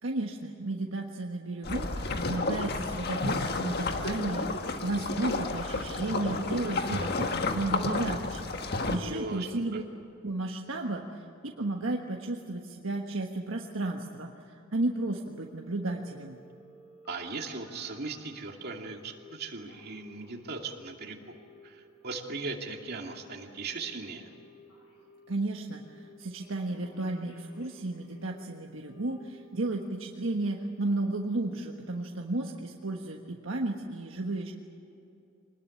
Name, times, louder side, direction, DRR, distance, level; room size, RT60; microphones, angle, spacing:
voice 1, 0.0-9.8 10.2-16.4 25.3-34.5, right 2 dB, 75° right, 1 dB, 1.4 m, -33 dB
sound 1, 1.6-9.0, left 3 dB, 55° left, 1.5 m, -31 dB
voice 2, 9.0-9.8 17.1-21.3 21.6-24.3, right 3 dB, 55° right, 1 dB, 2.6 m, -38 dB
Telephone, 15.0-18.3 18.9-19.3 19.5-20.9 21.2-21.6 22.0-25.3 25.7-26.1 26.4-28.4 28.8-29.7 30.0-30.4 30.8-31.2 31.5-31.9 32.3-32.4, left 1 dB, 80° left, 7.4 m, -56 dB
25.0 x 20.0 x 8.4 m, 2.8 s
head